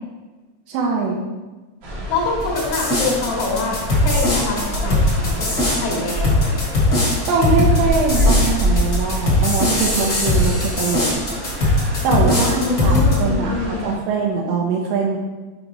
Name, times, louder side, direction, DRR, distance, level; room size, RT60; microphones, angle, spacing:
voice 1, 0.7-1.2 7.3-11.2 12.0-15.2, right 4 dB, 90° right, -3 dB, 2.9 m, -22 dB
sound 1, 1.8-13.9, equal, 75° right, 1.3 m, -26 dB
voice 2, 2.1-6.5 12.1-13.9, left 3 dB, 70° left, -3 dB, 3.1 m, -25 dB
sound 2, 2.5-13.1, left 2 dB, 40° left, 1.3 m, -19 dB
7.4 x 5.0 x 3.3 m, 1.2 s
omnidirectional pair, 5.1 m